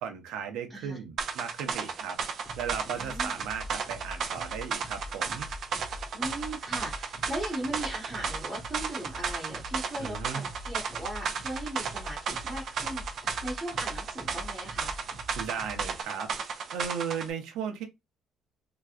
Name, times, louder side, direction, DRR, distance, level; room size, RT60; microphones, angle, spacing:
voice 1, 0.0-2.2 2.6-5.5 10.0-10.5 15.4-17.8, right 7 dB, 90° right, 0.9 m, -36 dB
sound 1, 1.2-17.3, right 6 dB, 45° right, 0.6 m, -34 dB
sound 2, 2.4-16.0, left 1 dB, 15° left, 1.3 m, -44 dB
voice 2, 2.8-3.4 6.1-15.0, right 1 dB, 10° right, 1.3 m, -38 dB
3.5 x 3.0 x 2.4 m
cardioid pair, 170°, 0 cm